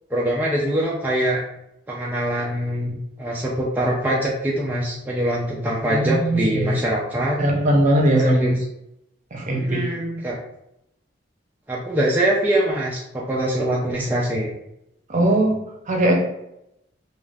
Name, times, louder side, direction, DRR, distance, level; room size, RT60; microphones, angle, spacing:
voice 1, 0.1-1.4 1.9-7.4 8.1-8.6 9.5-10.4 11.7-14.5, right 1 dB, 10° right, -5 dB, 0.4 m, -23 dB
voice 2, 5.9-6.8 7.4-8.5 9.3-9.9 15.1-16.1, right 1 dB, 45° right, -1 dB, 0.7 m, -20 dB
2.4 x 2.2 x 3.3 m, 0.82 s
head